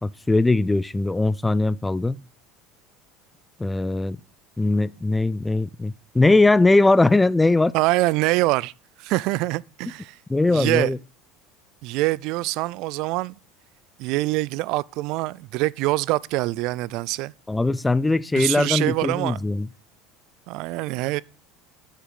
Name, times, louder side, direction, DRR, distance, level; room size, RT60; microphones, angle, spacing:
voice 1, 0.0-2.2 3.6-4.2 4.6-7.7 10.3-11.0 17.5-19.7, left 2 dB, 10° left, 0.4 m, -20 dB
voice 2, 7.7-8.7 9.0-10.2 10.5-10.9 11.8-13.4 14.0-17.3 18.3-19.4 20.5-21.2, right 20 dB, 65° right, 0.3 m, -24 dB
7.8 x 6.7 x 5.6 m
supercardioid pair, 110°, 0 cm